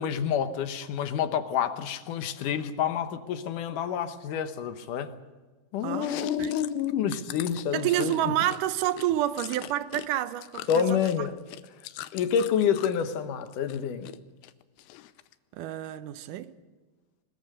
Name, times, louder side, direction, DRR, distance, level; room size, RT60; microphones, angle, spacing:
voice 1, 0.0-5.2 5.7-8.3 10.7-11.4 12.1-14.1, left 8 dB, 65° left, 2.3 m, -28 dB
voice 2, 5.8-6.5 7.7-11.3 15.5-16.5, right 13 dB, 75° right, 2.0 m, -29 dB
Chewing mastication, 5.9-10.1 10.3-13.0 13.4-14.2 14.4-15.3, left 15 dB, 90° left, 2.9 m, -42 dB
22.0 x 21.0 x 6.7 m
omnidirectional pair, 4.6 m